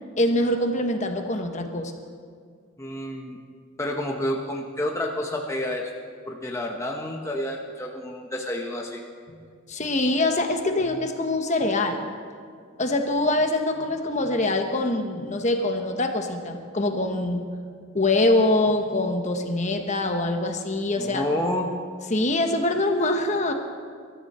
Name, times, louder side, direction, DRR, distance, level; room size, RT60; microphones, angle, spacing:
voice 1, 0.2-1.9 9.7-12.0 12.8-17.4 17.9-21.2 22.1-23.5, left 2 dB, 35° left, 5 dB, 1.1 m, -24 dB
voice 2, 2.8-3.4 3.8-5.9 6.3-9.0 21.0-21.7, left 1 dB, 15° left, 0 dB, 0.9 m, -29 dB
23.0 x 13.5 x 4.3 m, 2.1 s
head